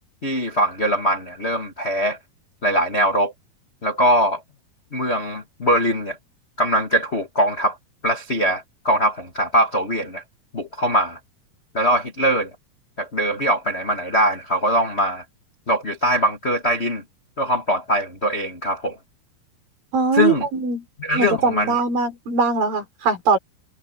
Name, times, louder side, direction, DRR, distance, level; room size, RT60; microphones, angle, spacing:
voice 1, 0.2-2.2 2.6-3.3 3.8-4.4 4.9-6.2 6.6-7.8 8.0-10.2 10.5-11.2 11.7-12.5 13.0-15.2 15.7-17.0 17.4-19.0 20.1-20.5 21.0-21.8, equal, 55° left, 0.6 m, -21 dB
voice 2, 19.9-20.8 21.1-23.4, right 4 dB, 65° right, 5.8 m, -21 dB
omnidirectional pair, 4.4 m